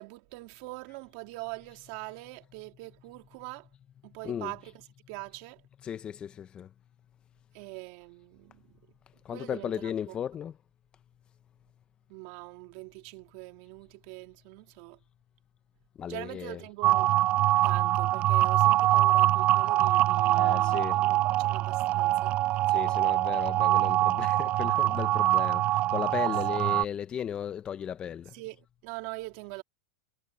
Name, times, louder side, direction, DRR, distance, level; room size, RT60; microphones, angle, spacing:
voice 1, 0.0-3.7 4.0-5.7 7.5-8.8 9.3-10.2 12.1-15.0 16.1-17.1 17.6-22.6 26.2-26.3 28.3-29.6, right 24 dB, 50° right, 3.1 m, -43 dB
voice 2, 4.2-4.6 5.8-6.7 9.2-10.5 16.0-16.6 20.3-21.0 22.7-28.3, left 9 dB, 25° left, 0.9 m, -35 dB
sound 1, 16.8-26.8, right 15 dB, 35° right, 0.3 m, -24 dB
supercardioid pair, 140°, 4 cm